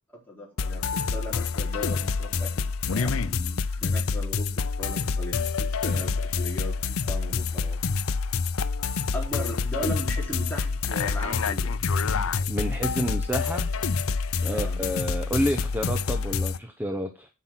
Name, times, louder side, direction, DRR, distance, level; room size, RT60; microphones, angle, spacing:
voice 1, 0.3-7.8 9.1-11.7 14.5-14.8, equal, 10° left, -3 dB, 4.3 m, -37 dB
sound 1, 0.6-16.6, left 5 dB, 70° left, 0.6 m, -27 dB
voice 2, 12.5-13.7 14.4-17.3, equal, 10° right, 6 dB, 0.9 m, -29 dB
9.7 x 6.2 x 6.1 m, 0.29 s
head